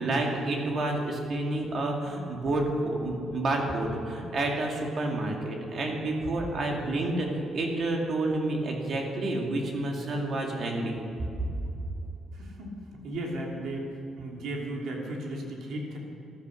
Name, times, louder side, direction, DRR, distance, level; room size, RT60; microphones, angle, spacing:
voice 1, 0.0-11.0, right 2 dB, 40° right, 1 dB, 2.4 m, -29 dB
voice 2, 12.3-12.7 13.0-13.9 14.2-16.0, right 1 dB, 65° right, -1 dB, 3.0 m, -35 dB
14.5 x 13.0 x 6.4 m, 2.8 s
cardioid pair, 180°, 0 cm